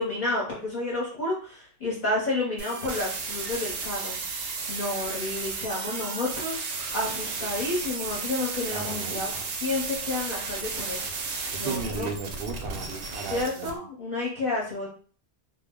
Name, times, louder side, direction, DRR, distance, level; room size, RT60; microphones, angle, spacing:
voice 1, 0.0-9.3 9.6-12.1 13.3-14.9, left 2 dB, 45° left, -5 dB, 0.8 m, -31 dB
sound 1, 2.6-13.7, right 4 dB, 90° right, 0.9 m, -34 dB
voice 2, 8.7-9.4 11.5-13.9, right 5 dB, 65° right, 4 dB, 0.7 m, -35 dB
2.3 x 2.0 x 3.5 m, 0.43 s
omnidirectional pair, 1.1 m